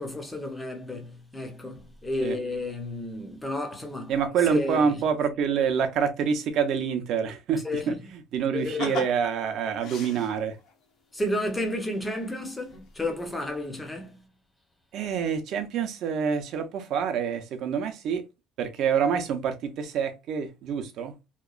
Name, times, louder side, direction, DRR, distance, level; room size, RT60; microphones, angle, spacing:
voice 1, 0.0-4.2 4.5-5.0 7.6-8.0 8.5-9.0 11.1-14.2, left 1 dB, 10° left, 0.5 m, -32 dB
voice 2, 4.1-7.9 8.3-10.6 14.9-18.2 18.6-21.1, right 7 dB, 50° right, 0.5 m, -27 dB
sound 1, 8.6-10.7 12.1-12.2 12.7-13.1 13.4-13.6, left 4 dB, 55° left, 0.7 m, -38 dB
2.8 x 2.2 x 2.3 m
cardioid pair, 170°, 0 cm